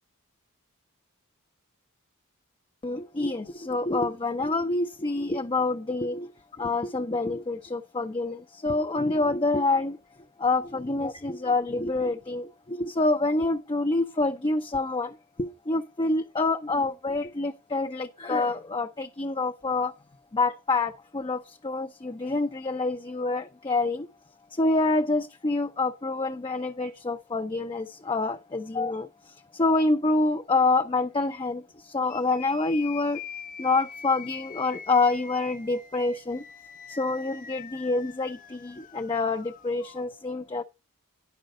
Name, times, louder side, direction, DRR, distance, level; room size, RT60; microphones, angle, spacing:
voice 1, 2.8-6.3 6.6-10.0 10.4-19.9 20.3-24.1 24.5-33.2 33.6-36.4 36.9-40.6, left 3 dB, 25° left, 0.6 m, -27 dB
sound 1, 32.1-40.0, left 7 dB, 40° left, 0.9 m, -44 dB
10.5 x 5.1 x 6.2 m
head